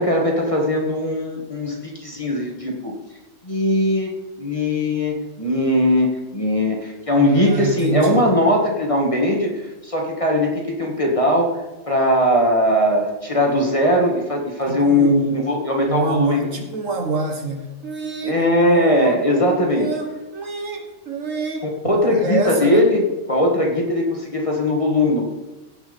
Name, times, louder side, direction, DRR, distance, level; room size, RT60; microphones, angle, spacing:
voice 1, 0.0-2.9 3.4-4.1 4.4-9.5 9.8-11.5 11.9-16.5 18.2-19.9 21.8-23.0 23.3-25.2, left 1 dB, 20° left, 0 dB, 1.7 m, -19 dB
voice 2, 7.1-8.2 14.7-15.4 15.9-22.9, right 3 dB, 60° right, 3 dB, 1.8 m, -27 dB
16.5 x 6.0 x 5.3 m, 1.1 s
omnidirectional pair, 1.5 m